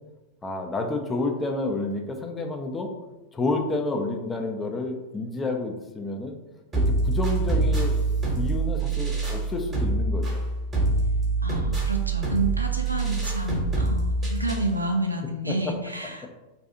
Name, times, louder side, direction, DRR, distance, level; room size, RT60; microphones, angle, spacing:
voice 1, 0.4-2.9 3.3-6.4 6.8-8.0 8.3-10.4 15.5-15.7, left 2 dB, 15° left, 3 dB, 0.4 m, -29 dB
sound 1, 6.7-14.7, right 3 dB, 20° right, 0.9 m, -25 dB
voice 2, 11.4-16.3, right 2 dB, 85° right, 2 dB, 0.4 m, -29 dB
2.5 x 2.3 x 2.7 m, 1.1 s
figure-of-eight pair, 90°, 0 cm